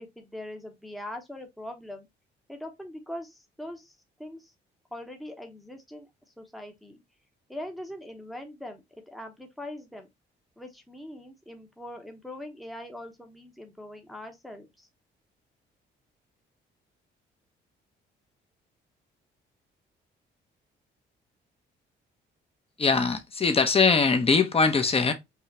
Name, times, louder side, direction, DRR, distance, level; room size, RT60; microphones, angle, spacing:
voice 1, 0.0-2.1 2.5-4.5 4.9-6.1 6.4-7.0 7.5-10.1 10.6-14.9, left 1 dB, ahead, 0.9 m, -42 dB
voice 2, 22.8-25.1, left 4 dB, 30° left, 0.9 m, -22 dB
5.0 x 2.4 x 2.8 m
cardioid pair, 90°, 20 cm